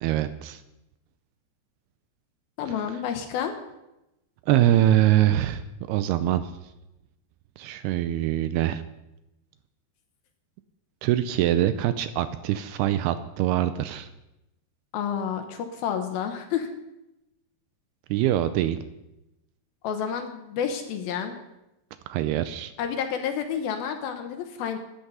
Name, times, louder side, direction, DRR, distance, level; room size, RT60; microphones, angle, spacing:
voice 1, 0.0-0.6 2.7-2.8 4.5-5.6 5.9-6.5 7.6-8.8 11.0-14.1 18.1-18.8 22.1-22.7, right 13 dB, 80° right, 11 dB, 2.4 m, -23 dB
voice 2, 2.6-3.5 14.9-16.7 19.8-21.3 22.8-24.8, left 8 dB, 70° left, 6 dB, 2.5 m, -30 dB
13.0 x 10.0 x 5.5 m, 0.94 s
omnidirectional pair, 4.9 m